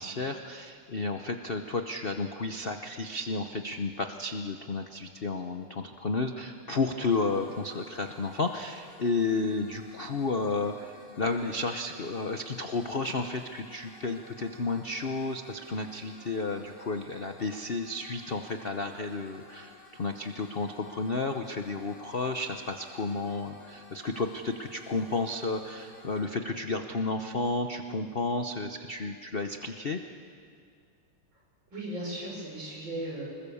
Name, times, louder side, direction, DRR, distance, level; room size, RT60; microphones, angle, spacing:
voice 1, 0.0-30.0, left 3 dB, 80° left, 6 dB, 0.5 m, -32 dB
sound 1, 7.1-26.3, left 2 dB, 55° left, 4.4 m, -54 dB
voice 2, 31.7-33.3, right 1 dB, 60° right, -2 dB, 6.6 m, -37 dB
26.0 x 20.5 x 7.1 m, 2.3 s
omnidirectional pair, 2.4 m